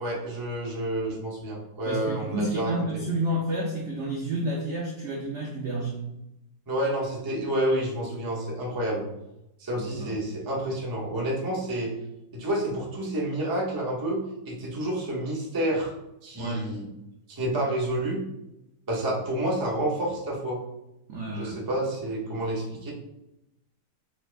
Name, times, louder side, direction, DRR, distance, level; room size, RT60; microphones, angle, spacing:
voice 1, 0.0-2.7 6.7-9.1 9.6-11.9 12.3-15.9 16.2-16.8 17.3-18.2 18.9-20.6 21.3-22.9, right 1 dB, 25° right, -3 dB, 0.4 m, -29 dB
voice 2, 1.8-6.1 9.8-10.2 16.4-16.7 21.1-21.5, right 1 dB, 70° right, -1 dB, 0.7 m, -30 dB
4.3 x 3.4 x 2.5 m, 0.88 s
omnidirectional pair, 1.9 m